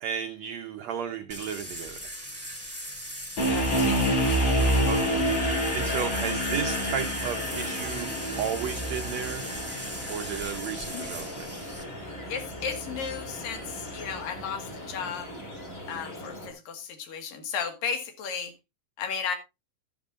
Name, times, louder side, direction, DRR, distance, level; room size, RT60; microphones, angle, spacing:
voice 1, 0.0-2.1 4.9-5.3 5.7-8.1 8.4-9.5 10.1-11.5, right 8 dB, 85° right, 1.5 m, -33 dB
sound 1, 1.3-11.8, equal, 5° left, 1.2 m, -39 dB
sound 2, 3.4-14.4, equal, 50° left, 5.7 m, -29 dB
voice 2, 3.5-4.4 10.9-11.1 12.3-15.3 15.9-18.5 19.0-19.4, left 6 dB, 70° left, 3.3 m, -34 dB
what midnight sounds like, 4.6-16.5, equal, 30° left, 4.6 m, -41 dB
12.0 x 11.0 x 2.5 m
omnidirectional pair, 4.2 m